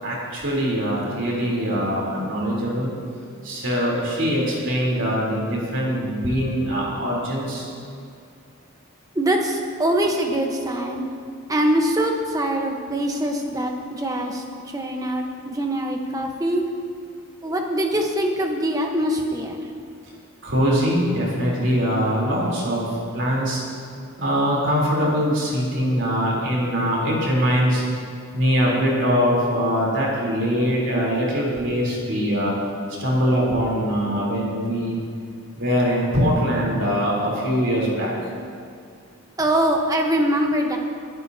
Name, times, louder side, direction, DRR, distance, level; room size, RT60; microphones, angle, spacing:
voice 1, 0.0-2.9 3.4-7.7 20.4-22.9 23.1-23.6 24.2-27.8 28.3-32.5 33.0-35.0 35.6-38.1, equal, 55° right, -4 dB, 3.6 m, -22 dB
voice 2, 9.1-11.1 11.5-14.4 14.7-16.6 17.4-19.6 39.4-40.8, right 1 dB, 15° right, 2 dB, 1.0 m, -23 dB
22.5 x 11.0 x 2.8 m, 2.4 s
head